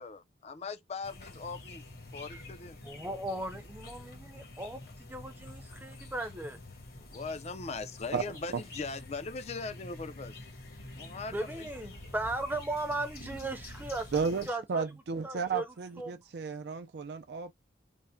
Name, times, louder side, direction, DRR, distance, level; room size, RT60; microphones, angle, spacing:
voice 1, 0.0-1.8 2.1-2.8 7.0-10.4 10.9-12.0, left 4 dB, 35° left, 0.4 m, -40 dB
sound 1, 1.0-14.5, left 2 dB, 55° left, 1.1 m, -48 dB
voice 2, 2.8-6.6 11.3-14.9 15.2-15.7 16.0-16.2, right 2 dB, 10° right, 0.6 m, -37 dB
sound 2, 7.9-14.3, equal, 75° left, 1.7 m, -53 dB
voice 3, 14.1-17.5, right 5 dB, 65° right, 0.4 m, -33 dB
3.5 x 2.1 x 4.3 m
head